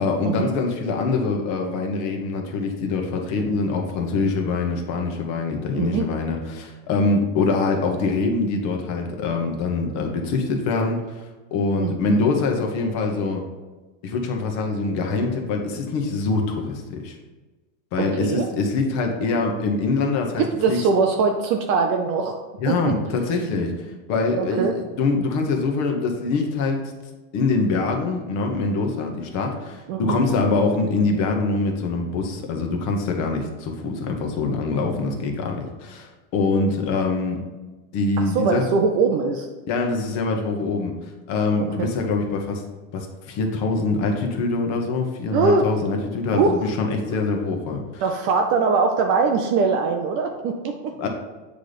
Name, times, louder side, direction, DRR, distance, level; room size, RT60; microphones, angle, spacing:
voice 1, 0.0-11.2 11.5-13.4 14.0-17.2 17.9-20.8 22.6-26.8 27.3-37.4 37.9-38.7 39.7-40.9 41.3-42.6 42.9-48.0 51.0-51.1, left 3 dB, 40° left, 3 dB, 1.1 m, -24 dB
voice 2, 5.7-6.1 11.8-12.2 18.0-18.5 20.4-22.9 24.3-24.8 29.9-30.2 38.3-39.5 41.6-41.9 45.3-45.7 46.3-46.6 48.0-50.9, right 4 dB, 35° right, 4 dB, 0.4 m, -22 dB
8.3 x 3.4 x 4.0 m, 1.2 s
supercardioid pair, 150°, 40 cm